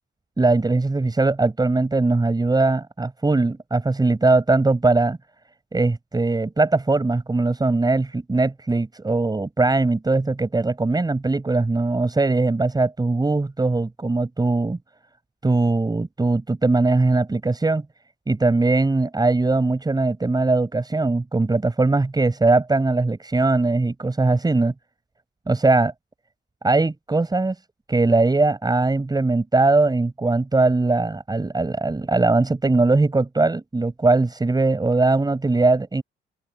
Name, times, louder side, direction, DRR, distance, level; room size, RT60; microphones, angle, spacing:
voice 1, 0.4-5.2 5.7-14.8 15.4-17.8 18.3-24.7 25.5-25.9 26.6-27.6 27.9-36.0, right 3 dB, 20° right, 6.7 m, -20 dB
cardioid pair, 90°, 20 cm